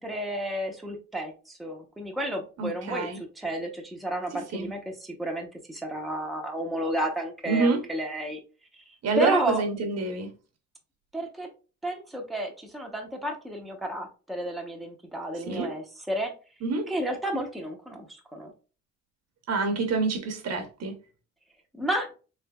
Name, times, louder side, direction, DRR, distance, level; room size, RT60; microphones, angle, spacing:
voice 1, 0.0-3.1 3.4-8.4 8.8-9.6 11.1-11.5 11.8-16.3 16.9-18.5 21.7-22.1, right 1 dB, ahead, 0.7 m, -32 dB
voice 2, 2.6-3.2 4.5-4.7 7.5-7.8 9.0-10.3 15.5-15.8 16.6-16.9 19.5-21.0, right 4 dB, 55° right, 0.9 m, -27 dB
3.3 x 3.2 x 2.2 m
cardioid pair, 90°, 30 cm